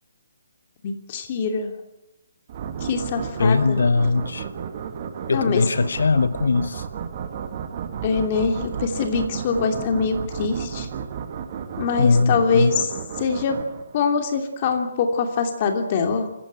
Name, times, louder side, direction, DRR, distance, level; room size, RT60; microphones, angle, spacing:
voice 1, 0.8-1.7 2.8-3.8 5.3-5.6 8.0-10.9 11.8-12.9 13.2-13.6 13.9-16.3, left 5 dB, 30° left, 2.9 m, -23 dB
sound 1, 2.5-14.2, right 7 dB, 35° right, 1.9 m, -33 dB
voice 2, 3.4-4.5 5.3-6.9 12.0-12.7, left 4 dB, 85° left, 0.8 m, -20 dB
27.0 x 16.0 x 8.3 m
hypercardioid pair, 170°, 0 cm